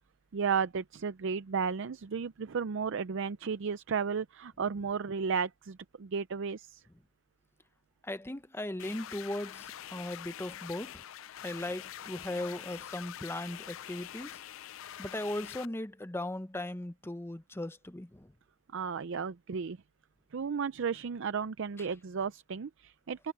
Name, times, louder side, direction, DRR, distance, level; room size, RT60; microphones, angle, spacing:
voice 1, 0.3-6.8 18.7-19.8 20.3-23.3, right 6 dB, 65° right, 0.5 m, -33 dB
voice 2, 8.0-11.1 11.4-14.4 15.0-18.3, left 1 dB, 10° left, 0.7 m, -38 dB
sound 1, 8.8-15.7, left 11 dB, 75° left, 0.4 m, -45 dB
head